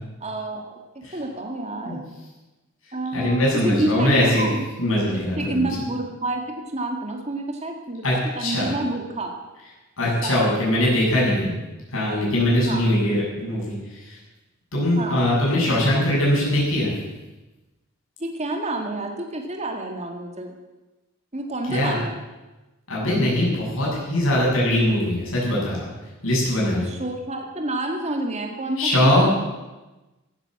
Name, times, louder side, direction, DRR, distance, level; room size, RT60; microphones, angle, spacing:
voice 1, 0.2-2.0 2.9-4.6 5.0-8.0 8.4-9.4 10.2-10.6 12.5-13.0 15.0-15.3 18.2-20.5 21.3-22.2 26.8-29.4, right 2 dB, 30° right, 2 dB, 1.9 m, -29 dB
voice 2, 3.1-4.5 4.8-5.7 8.0-8.7 10.0-11.5 11.9-14.2 14.7-16.9 21.7-21.9 22.9-25.8 26.2-26.9 28.8-29.3, left 1 dB, 65° left, -5 dB, 7.5 m, -21 dB
16.5 x 11.0 x 7.7 m, 1.1 s
head